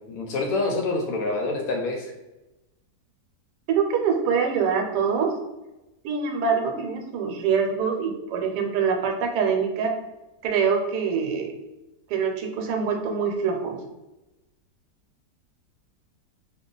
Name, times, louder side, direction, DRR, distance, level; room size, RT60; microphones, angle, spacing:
voice 1, 0.1-2.1, left 3 dB, 70° left, 1 dB, 0.9 m, -26 dB
voice 2, 3.7-5.3 6.0-9.9 10.4-11.5 12.1-13.8, right 6 dB, 80° right, 2 dB, 1.1 m, -24 dB
2.8 x 2.3 x 3.8 m, 1.0 s
omnidirectional pair, 1.8 m